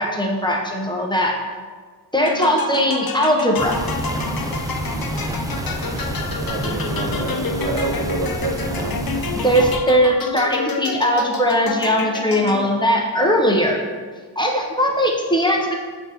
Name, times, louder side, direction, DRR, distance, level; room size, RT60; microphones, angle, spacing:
voice 1, 0.0-1.3 2.1-3.7 9.3-13.8 14.4-15.8, equal, 10° left, -1 dB, 0.9 m, -19 dB
sound 1, 2.3-12.9, left 4 dB, 55° left, 0.7 m, -29 dB
sound 2, 3.6-9.8, right 1 dB, 10° right, 0.6 m, -28 dB
voice 2, 6.4-9.0, right 2 dB, 70° right, 1 dB, 1.0 m, -27 dB
8.0 x 4.0 x 3.5 m, 1.5 s
wide cardioid pair, 75°, 42 cm